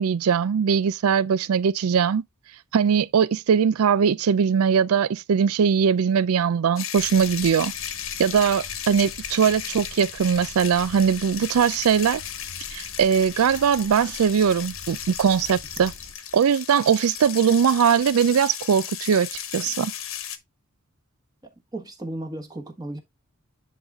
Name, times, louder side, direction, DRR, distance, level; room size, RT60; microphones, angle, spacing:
voice 1, 0.0-2.2 2.7-7.7 8.2-12.2 12.7-15.9 16.3-19.9, right 7 dB, 85° right, 0.4 m, -21 dB
sound 1, 6.8-20.4, left 10 dB, 70° left, 1.2 m, -35 dB
sound 2, 7.0-16.1, equal, 40° right, 1.5 m, -47 dB
voice 2, 21.4-23.0, right 1 dB, 20° right, 1.4 m, -35 dB
10.0 x 4.0 x 3.5 m
head